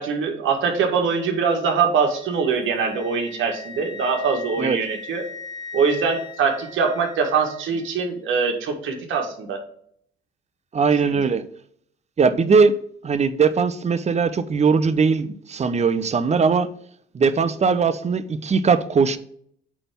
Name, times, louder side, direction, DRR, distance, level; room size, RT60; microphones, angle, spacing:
voice 1, 0.0-5.2 5.7-9.6 11.0-11.2, right 5 dB, 80° right, 1.9 m, -23 dB
Wind instrument woodwind instrument, 2.0-7.9, left 5 dB, 20° left, 1.1 m, -40 dB
voice 2, 10.7-11.4 12.2-12.7 13.0-16.7 17.1-19.2, right 5 dB, 35° right, 0.7 m, -20 dB
8.5 x 3.5 x 5.9 m
cardioid pair, 90°, 20 cm